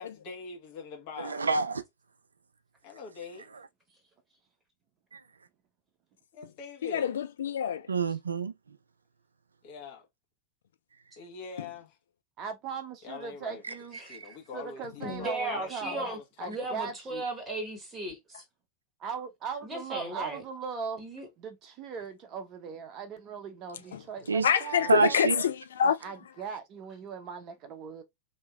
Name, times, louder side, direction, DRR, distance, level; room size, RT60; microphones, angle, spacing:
voice 1, 0.0-1.5 2.8-3.5 6.3-7.1 9.6-10.0 11.2-11.9 13.0-13.6 14.0-16.9 24.7-25.1, left 6 dB, 45° left, 1.2 m, -43 dB
voice 2, 1.2-1.8 5.1-5.2 7.9-8.5 13.6-13.7 14.1-14.3 24.3-24.5 24.9-25.3, right 5 dB, 75° right, 0.3 m, -27 dB
voice 3, 6.8-7.9 15.0-15.2 23.9-24.0 24.4-26.0, left 8 dB, 65° left, 0.4 m, -27 dB
voice 4, 12.4-14.0 14.5-16.0 16.4-17.2 19.0-21.0 21.4-25.2 25.8-28.0, right 6 dB, 35° right, 0.8 m, -39 dB
voice 5, 15.0-16.2 16.4-18.4 19.6-20.4 21.0-21.3, right 2 dB, 15° right, 1.0 m, -36 dB
2.8 x 2.7 x 2.3 m
figure-of-eight pair, 90°, 0 cm